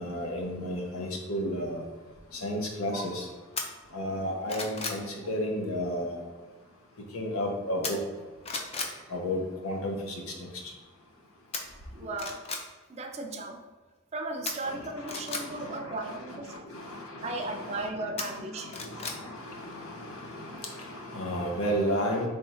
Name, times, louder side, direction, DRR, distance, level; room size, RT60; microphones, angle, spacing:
voice 1, 0.0-1.8 2.3-3.3 3.9-6.2 7.1-8.0 9.1-10.5 14.6-22.3, equal, 90° left, 1 dB, 0.9 m, -33 dB
sound 1, 3.6-3.7 4.2-5.0 7.8-8.2 8.4-8.9 11.5-11.6 12.1-12.6 14.5-15.4 18.2-19.2 19.6-19.7, left 4 dB, 30° left, 0.4 m, -34 dB
voice 2, 11.9-12.4 12.9-13.6 14.1-16.6 17.2-18.9, right 2 dB, 30° right, 4 dB, 0.4 m, -36 dB
3.6 x 3.3 x 4.3 m, 1.3 s
head